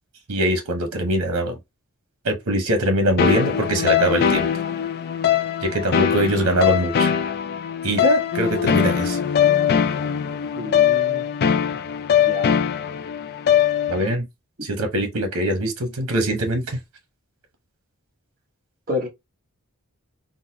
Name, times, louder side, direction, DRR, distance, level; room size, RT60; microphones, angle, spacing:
voice 1, 0.3-1.6 2.2-4.5 5.6-7.1 7.8-9.2 13.9-14.3 14.6-16.8, right 1 dB, 90° right, 1.0 m, -22 dB
sound 1, 3.2-14.1, left 8 dB, 45° left, 0.4 m, -21 dB
voice 2, 10.6-11.2 12.2-12.5 18.9-19.1, left 2 dB, 40° right, 1.1 m, -29 dB
3.8 x 2.1 x 2.7 m
head